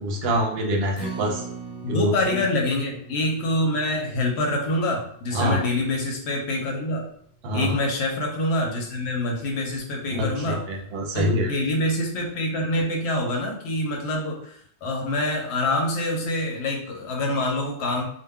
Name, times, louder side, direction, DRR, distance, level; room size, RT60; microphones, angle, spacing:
voice 1, 0.0-1.5 1.9-2.4 5.3-5.6 7.4-7.8 10.1-11.5, equal, 70° right, 1 dB, 0.8 m, -25 dB
Acoustic guitar, 0.9-7.3 7.7-7.8 8.2-8.3, right 3 dB, 35° left, 0.8 m, -41 dB
voice 2, 1.8-7.0 7.5-10.6 11.1-18.1, left 1 dB, 75° left, 1 dB, 0.9 m, -26 dB
2.2 x 2.2 x 3.4 m, 0.65 s
omnidirectional pair, 1.1 m